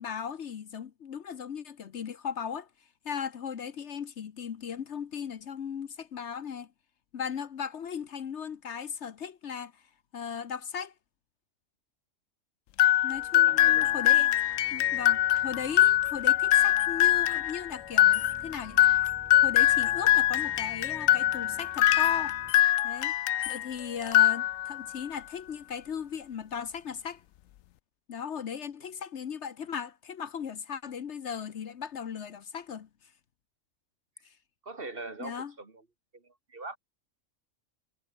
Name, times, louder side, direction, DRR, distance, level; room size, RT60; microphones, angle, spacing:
voice 1, 0.0-2.7 3.0-6.7 7.1-9.9 10.1-10.9 13.0-14.4 14.7-19.1 19.4-22.4 22.8-23.1 23.4-27.2 28.1-32.9 35.2-35.5, left 7 dB, 60° left, 1.2 m, -37 dB
sound 1, 12.8-23.7 24.0-24.9, left 13 dB, 85° left, 1.0 m, -23 dB
voice 2, 13.3-13.9 34.6-35.9 36.1-36.8, right 3 dB, 45° right, 2.4 m, -42 dB
sound 2, 13.4-22.5, right 1 dB, 15° right, 5.1 m, -52 dB
omnidirectional pair, 1.4 m